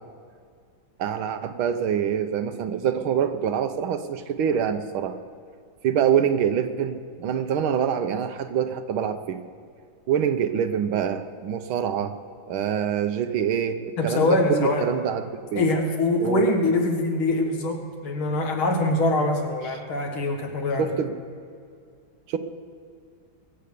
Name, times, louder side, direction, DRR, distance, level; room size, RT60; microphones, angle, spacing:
voice 1, 1.0-5.2 5.8-9.4 10.1-12.1 12.5-15.7 16.2-16.4 20.8-21.2 22.3-22.4, right 8 dB, 85° right, 9 dB, 1.7 m, -25 dB
voice 2, 14.0-14.9 15.6-20.9, left 2 dB, 90° left, 3 dB, 2.6 m, -23 dB
22.0 x 7.9 x 6.8 m, 2.3 s
omnidirectional pair, 2.2 m